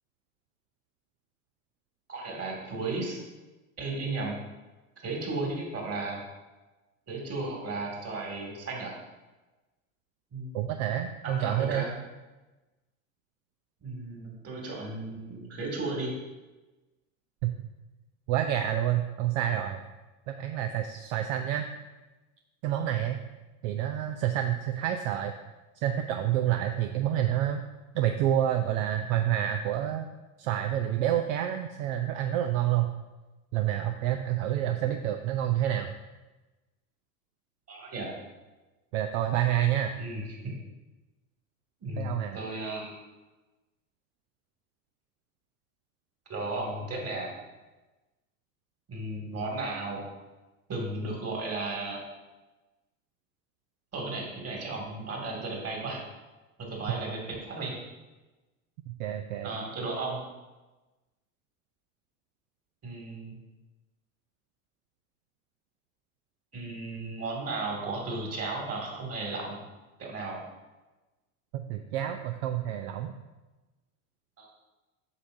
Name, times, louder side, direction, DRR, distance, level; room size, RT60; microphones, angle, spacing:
voice 1, 2.1-3.2 3.8-4.4 5.0-6.2 7.1-8.9 10.3-10.5 11.2-12.0 13.8-16.1 37.7-38.2 40.0-40.5 41.8-42.9 46.3-47.3 48.9-50.0 50.7-52.0 53.9-56.0 56.6-57.8 59.4-60.2 62.8-63.4 66.5-69.6 70.0-70.4 74.4-74.5, right 2 dB, 35° right, -1 dB, 2.2 m, -34 dB
voice 2, 10.5-11.9 17.4-17.5 18.3-19.8 20.3-21.7 22.6-23.2 23.6-25.3 25.8-27.6 27.9-30.1 30.4-32.9 33.5-35.9 38.9-39.9 42.0-42.4 58.9-59.5 71.5-73.1, right 11 dB, 65° right, 6 dB, 0.6 m, -28 dB
8.1 x 5.9 x 2.6 m, 1.1 s
hypercardioid pair, 85°, 43 cm